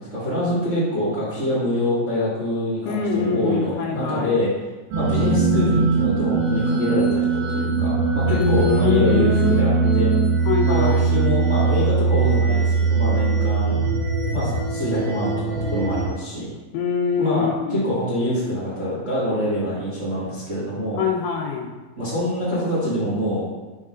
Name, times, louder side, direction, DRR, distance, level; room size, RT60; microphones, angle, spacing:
voice 1, 0.1-4.5 4.9-10.1 10.6-13.8 14.3-16.5 17.2-21.0 22.0-23.4, left 1 dB, 45° right, -11 dB, 0.9 m, -25 dB
voice 2, 2.9-4.4 8.4-11.0 16.7-17.9 21.0-21.7, left 4 dB, 90° left, 0 dB, 2.8 m, -24 dB
sound 1, 4.9-16.1, right 4 dB, 85° right, 3.0 m, -21 dB
6.8 x 5.6 x 2.5 m, 1.2 s
omnidirectional pair, 4.5 m